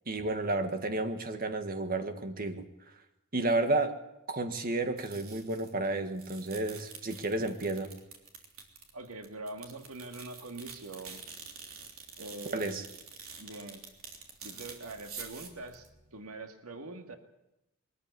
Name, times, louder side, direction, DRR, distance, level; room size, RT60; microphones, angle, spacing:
voice 1, 0.1-2.6 3.3-4.0 4.3-7.9 12.5-12.8, right 2 dB, 40° right, 7 dB, 1.6 m, -31 dB
sound 1, 5.0-5.9 6.1-16.3, right 5 dB, 70° right, 3.4 m, -48 dB
voice 2, 8.9-11.2 12.2-12.7 13.4-13.8 14.4-17.1, right 2 dB, 90° right, 5 dB, 1.9 m, -44 dB
22.0 x 14.0 x 9.5 m, 0.91 s
head